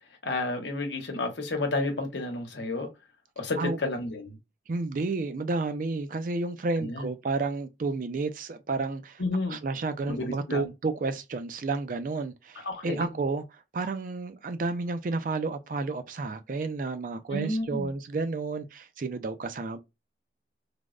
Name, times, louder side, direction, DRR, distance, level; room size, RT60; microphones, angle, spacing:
voice 1, 0.2-2.9 3.4-4.4 6.8-7.1 9.2-9.6 10.1-10.7 12.6-13.0 17.3-17.9, left 2 dB, 80° left, 0.9 m, -31 dB
voice 2, 4.7-9.2 9.5-19.8, right 3 dB, 45° right, 0.4 m, -31 dB
3.3 x 2.1 x 2.4 m
head